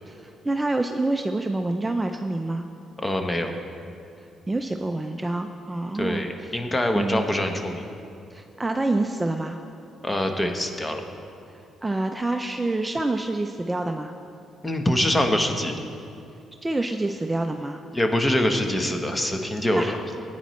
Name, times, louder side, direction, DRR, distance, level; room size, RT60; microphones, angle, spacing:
voice 1, 0.1-2.6 4.5-6.3 6.9-7.2 8.3-9.6 11.8-14.1 16.6-17.8 19.8-19.9, right 2 dB, 15° right, 5 dB, 0.4 m, -27 dB
voice 2, 3.0-3.5 5.9-7.8 10.0-11.0 14.6-15.7 17.9-20.0, left 1 dB, 15° left, 5 dB, 1.0 m, -24 dB
15.5 x 9.1 x 3.1 m, 2.6 s
cardioid pair, 90°, 0 cm